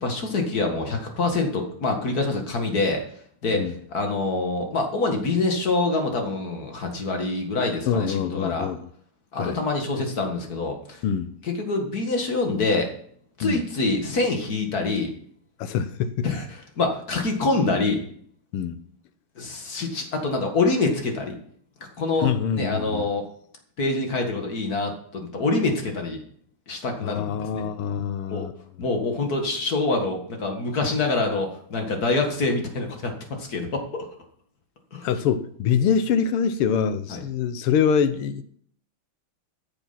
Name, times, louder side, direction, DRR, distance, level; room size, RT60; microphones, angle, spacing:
voice 1, 0.0-3.0 3.4-3.6 3.9-8.7 9.3-11.0 11.4-12.9 13.4-15.1 16.2-18.0 19.4-21.4 21.8-23.2 23.8-26.2 26.7-27.7 28.3-28.5 28.8-34.1 34.9-35.1 37.1-37.2, left 3 dB, 45° left, 2.1 m, -25 dB
voice 2, 7.9-8.9 9.4-9.6 11.0-11.3 13.4-13.6 15.6-16.3 18.5-18.8 22.2-23.1 27.0-28.5 35.0-38.4, left 7 dB, 90° left, 1.8 m, -24 dB
13.5 x 7.1 x 5.8 m
omnidirectional pair, 2.4 m